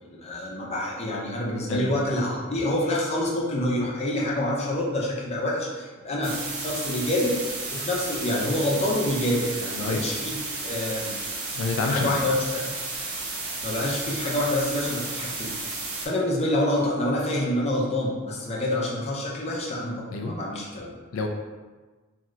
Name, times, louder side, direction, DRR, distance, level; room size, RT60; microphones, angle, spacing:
voice 1, 0.0-7.4 7.7-11.1 11.8-12.7 13.6-15.5 16.0-20.9, left 1 dB, 30° left, -4 dB, 0.6 m, -27 dB
sound 1, 6.2-16.1, right 3 dB, 65° right, 0.6 m, -33 dB
voice 2, 11.5-12.2 20.1-20.3 21.1-21.3, left 3 dB, 85° left, 2 dB, 0.3 m, -28 dB
3.1 x 2.7 x 2.4 m, 1.3 s
head